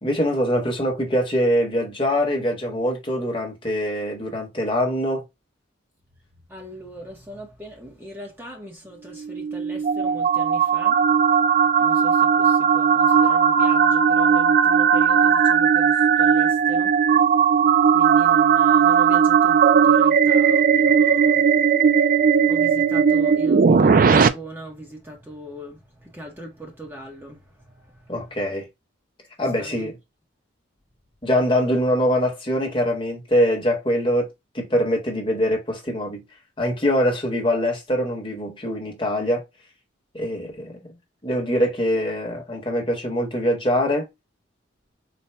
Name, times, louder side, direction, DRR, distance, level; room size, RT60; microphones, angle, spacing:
voice 1, 0.0-5.2 28.1-28.7 29.4-29.9 31.2-34.3 34.5-36.2 36.6-39.4 40.1-40.8 41.2-44.1, equal, 25° left, 1.0 m, -23 dB
voice 2, 6.5-11.0 11.8-17.3 17.9-21.5 21.9-28.4 29.6-29.9, right 1 dB, 10° right, 0.8 m, -40 dB
sound 1, 9.2-24.3, right 7 dB, 45° right, 0.3 m, -17 dB
4.2 x 2.1 x 3.2 m
head